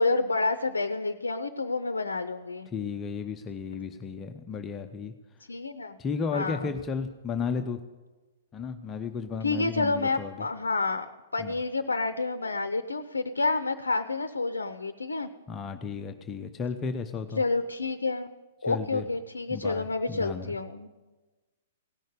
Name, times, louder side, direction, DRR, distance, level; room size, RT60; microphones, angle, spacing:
voice 1, 0.0-2.7 5.5-6.0 6.3-6.7 9.4-11.1 11.3-15.3 17.4-18.3 18.6-20.9, left 3 dB, 80° left, 11 dB, 0.6 m, -29 dB
voice 2, 2.7-5.1 6.0-7.8 8.5-10.3 11.4-11.6 15.5-17.4 18.6-19.1 19.5-20.6, left 5 dB, 20° left, 5 dB, 0.7 m, -34 dB
17.0 x 6.4 x 8.3 m, 1.2 s
figure-of-eight pair, 115°, 0 cm